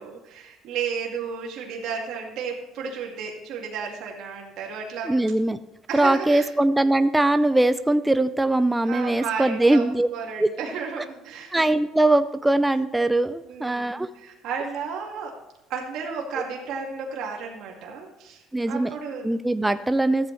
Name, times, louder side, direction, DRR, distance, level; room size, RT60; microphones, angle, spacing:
voice 1, 0.0-5.1 5.9-6.5 8.9-9.8 10.1-11.6 13.4-15.4 15.7-19.3, right 6 dB, 65° right, 0 dB, 1.9 m, -33 dB
voice 2, 5.0-5.6 5.9-10.1 10.4-10.5 11.5-14.1 18.5-18.9 19.2-20.3, right 2 dB, 10° right, 10 dB, 0.4 m, -21 dB
13.5 x 8.2 x 3.2 m, 0.93 s
cardioid pair, 110°, 0 cm